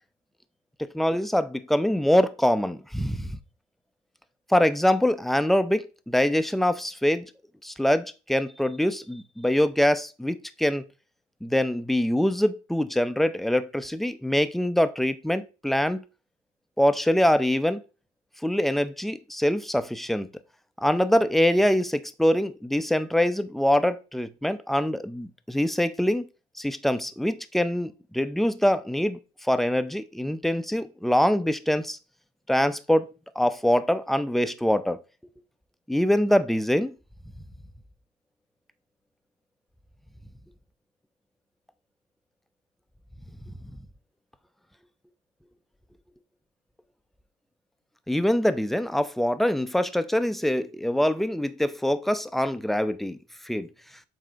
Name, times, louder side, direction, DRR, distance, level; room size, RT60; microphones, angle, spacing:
voice 1, 0.9-3.3 4.5-7.3 7.6-10.8 11.4-16.0 16.8-17.8 18.4-20.3 20.8-26.3 26.6-29.2 29.5-32.0 32.5-33.1 33.4-35.0 35.9-36.9 48.1-53.2 53.5-53.7, left 1 dB, ahead, 0.5 m, -24 dB
7.5 x 2.8 x 5.0 m
cardioid pair, 110°, 17 cm